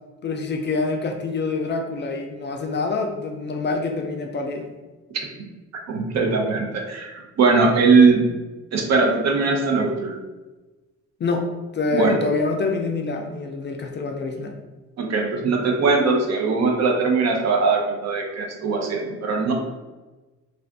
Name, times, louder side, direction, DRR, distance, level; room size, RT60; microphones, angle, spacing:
voice 1, 0.2-4.7 11.2-11.5 11.7-14.6, left 3 dB, 35° left, 3 dB, 0.4 m, -26 dB
voice 2, 5.9-8.2 8.7-10.2 11.9-12.2 15.0-19.5, right 4 dB, 60° right, 1 dB, 0.7 m, -20 dB
2.5 x 2.4 x 3.4 m, 1.2 s
cardioid pair, 90°, 30 cm